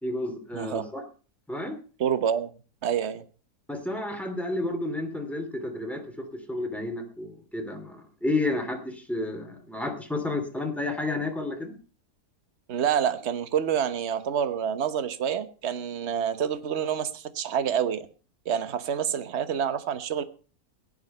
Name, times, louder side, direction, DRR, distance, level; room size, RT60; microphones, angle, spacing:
voice 1, 0.0-1.0 1.5-1.8 3.7-11.8, left 2 dB, ahead, 3 dB, 2.8 m, -31 dB
voice 2, 0.5-0.8 2.0-2.5 2.8-3.2 12.7-18.1 18.4-20.2, right 8 dB, 45° right, 12 dB, 1.3 m, -27 dB
16.5 x 10.5 x 5.5 m, 0.38 s
omnidirectional pair, 1.7 m